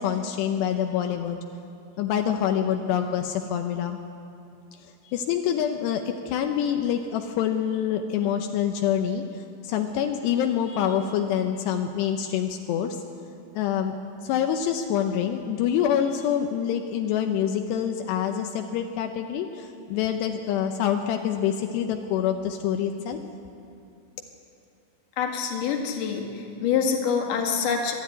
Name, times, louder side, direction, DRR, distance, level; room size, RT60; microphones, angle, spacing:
voice 1, 0.0-1.4 2.0-4.0 4.8-13.0 13.6-13.9 14.2-23.2, left 9 dB, 80° left, 5 dB, 3.0 m, -26 dB
voice 2, 25.2-28.0, left 6 dB, 55° left, 1 dB, 3.2 m, -26 dB
23.0 x 13.0 x 9.6 m, 2.5 s
omnidirectional pair, 4.9 m